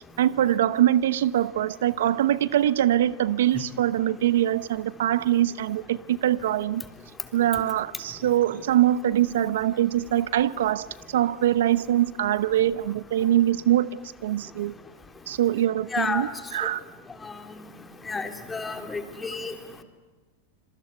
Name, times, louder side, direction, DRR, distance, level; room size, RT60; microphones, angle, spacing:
voice 1, 0.2-6.8 7.3-13.9 14.2-14.7 15.3-16.8, right 12 dB, 80° right, 17 dB, 0.9 m, -23 dB
voice 2, 15.9-16.2 17.2-17.3 18.1-19.5, left 4 dB, 15° left, 7 dB, 3.4 m, -30 dB
26.5 x 23.0 x 9.4 m, 1.3 s
hypercardioid pair, 115°, 0 cm